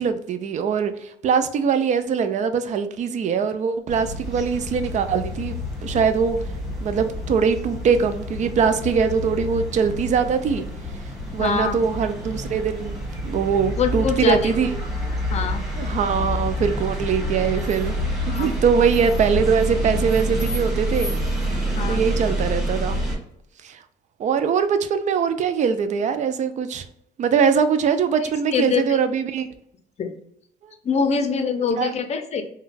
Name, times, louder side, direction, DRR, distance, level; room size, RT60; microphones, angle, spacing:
voice 1, 0.0-6.4 6.8-10.7 11.3-14.8 15.8-18.0 18.3-21.1 21.9-23.0 23.6-23.8 24.2-26.8 27.2-29.5 30.6-30.7 31.8-31.9, right 6 dB, 45° right, 10 dB, 0.4 m, -22 dB
sound 1, 3.9-23.2, equal, ahead, 1.4 m, -28 dB
voice 2, 11.4-11.8 13.8-14.5 15.3-15.6 18.3-18.6 21.8-22.0 28.2-29.0 30.0-30.1 30.8-32.4, left 5 dB, 40° left, 7 dB, 0.6 m, -24 dB
3.6 x 2.2 x 2.5 m, 0.74 s
cardioid pair, 110°, 17 cm